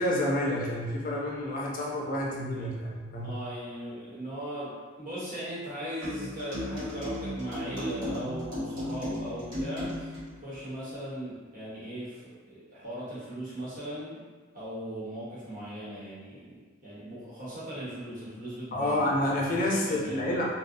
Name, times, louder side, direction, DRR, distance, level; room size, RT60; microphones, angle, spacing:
voice 1, 0.0-3.4 18.7-20.4, left 1 dB, 45° left, -3 dB, 0.4 m, -29 dB
voice 2, 3.2-10.1 10.4-14.2 14.5-19.1 19.7-20.4, equal, 45° right, -10 dB, 0.9 m, -38 dB
sound 1, 6.0-10.3, left 1 dB, 70° right, 1.1 m, -35 dB
2.6 x 2.0 x 2.5 m, 1.4 s
head